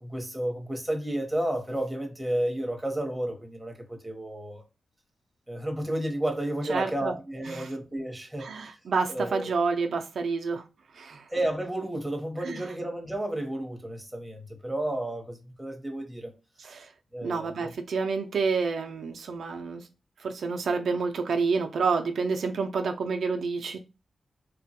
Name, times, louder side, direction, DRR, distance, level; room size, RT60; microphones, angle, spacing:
voice 1, 0.0-4.6 5.5-8.5 9.1-9.5 11.3-16.3 17.1-17.7, right 1 dB, 5° right, 0.9 m, -32 dB
voice 2, 6.7-7.1 7.5-7.7 8.4-10.6 11.0-11.2 12.4-12.6 16.6-16.9 17.2-19.8 20.2-23.8, right 4 dB, 80° right, 0.3 m, -29 dB
3.2 x 2.2 x 2.7 m
wide cardioid pair, 95°, 0 cm